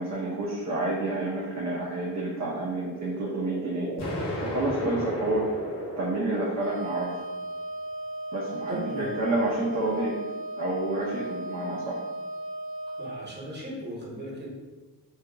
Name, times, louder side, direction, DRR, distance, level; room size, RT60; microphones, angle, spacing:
voice 1, 0.0-3.9 4.4-5.5 6.0-7.1 8.3-10.2 10.6-12.0, right 2 dB, 40° right, -3 dB, 0.5 m, -29 dB
sound 1, 2.7-6.9, equal, 15° left, 0.7 m, -35 dB
Explosion, 4.0-7.0, left 2 dB, 70° left, 0.7 m, -38 dB
Wind instrument woodwind instrument, 6.5-13.3, right 1 dB, 75° right, 0.8 m, -36 dB
voice 2, 8.7-9.1 13.0-14.5, equal, 25° right, -4 dB, 1.0 m, -37 dB
2.8 x 2.3 x 2.3 m, 1.2 s
cardioid pair, 80°, 42 cm